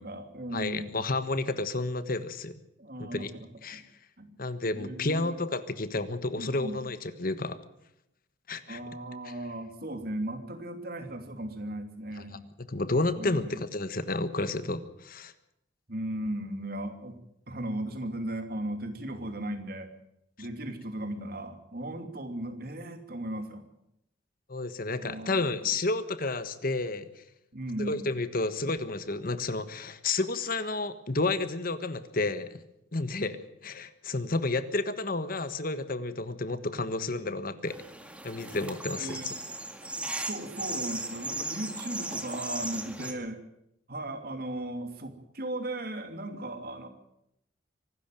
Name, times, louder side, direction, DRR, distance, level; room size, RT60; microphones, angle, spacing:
voice 1, 0.0-1.0 2.8-3.5 3.7-3.8 4.2-4.3 4.7-5.3 6.3-6.8 8.7-12.4 13.2-13.6 15.9-17.2 17.5-19.9 20.4-23.6 25.0-25.5 27.5-28.1 38.9-39.3 40.0-43.4 43.9-46.9, right 1 dB, 55° right, 6 dB, 2.9 m, -37 dB
voice 2, 0.5-2.5 3.0-3.3 3.6-3.8 4.4-7.6 8.5-8.8 12.7-15.3 24.5-27.1 27.8-32.6 32.9-37.8 38.2-39.2 43.0-43.2, left 2 dB, 50° left, 12 dB, 1.4 m, -31 dB
sound 1, 37.7-43.1, right 2 dB, 5° right, 1.9 m, -37 dB
24.5 x 12.5 x 9.2 m, 0.81 s
head